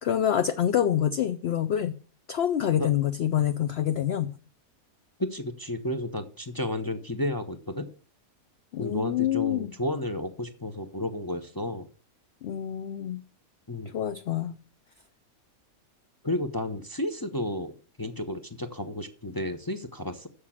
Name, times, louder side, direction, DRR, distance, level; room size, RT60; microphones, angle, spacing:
voice 1, 0.0-2.0 2.3-4.3 8.7-9.7 12.4-13.2 13.9-14.5, left 10 dB, 60° left, 10 dB, 0.7 m, -26 dB
voice 2, 5.2-7.9 8.8-11.9 13.7-13.9 16.2-20.3, left 1 dB, 25° left, 6 dB, 0.4 m, -32 dB
7.3 x 6.6 x 7.2 m, 0.39 s
omnidirectional pair, 1.5 m